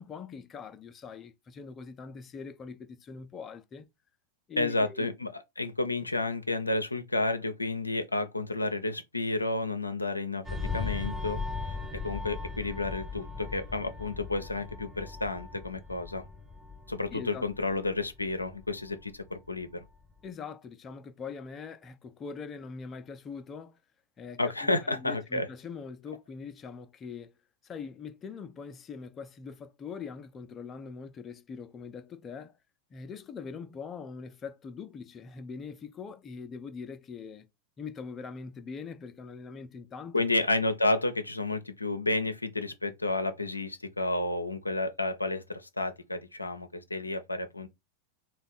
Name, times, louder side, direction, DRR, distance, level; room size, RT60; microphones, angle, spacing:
voice 1, 0.0-3.9 4.5-5.1 17.1-17.5 20.2-23.8 24.2-27.4 27.6-32.6 32.9-37.5 37.8-40.3, left 5 dB, 25° left, 0.5 m, -42 dB
voice 2, 4.6-10.4 10.7-11.4 12.0-16.3 16.9-19.8 24.4-25.5 40.1-47.7, left 2 dB, 85° left, 0.5 m, -31 dB
sound 1, 10.4-19.5 19.8-20.1, left 4 dB, 5° right, 0.8 m, -38 dB
3.4 x 2.3 x 3.9 m
figure-of-eight pair, 90°, 0 cm